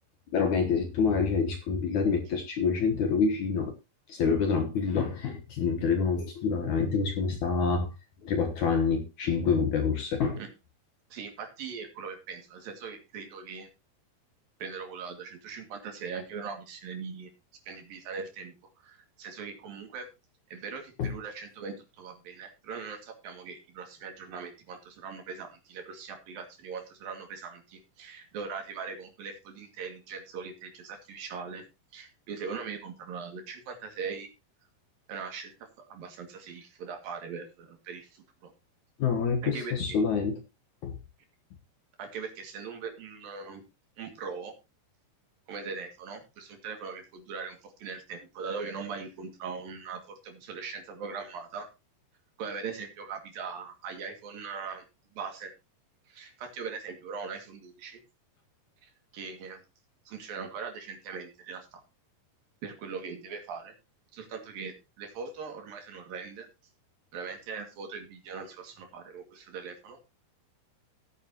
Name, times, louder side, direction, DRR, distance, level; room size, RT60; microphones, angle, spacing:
voice 1, 0.3-3.7 4.1-7.9 8.2-10.4 21.0-21.1 39.0-40.4 40.8-41.0, left 5 dB, 60° left, 2.2 m, -27 dB
voice 2, 11.1-13.7 14.6-17.3 17.6-18.5 18.8-20.1 20.5-31.6 31.9-34.3 35.1-38.5 39.4-40.0 42.0-43.6 44.0-44.5 45.5-51.7 52.4-54.8 55.2-55.5 56.1-58.0 58.8-59.6 60.1-61.8 62.6-63.7 64.1-66.5 67.1-70.0, right 5 dB, 65° right, 3.9 m, -40 dB
16.0 x 9.7 x 2.9 m
omnidirectional pair, 4.6 m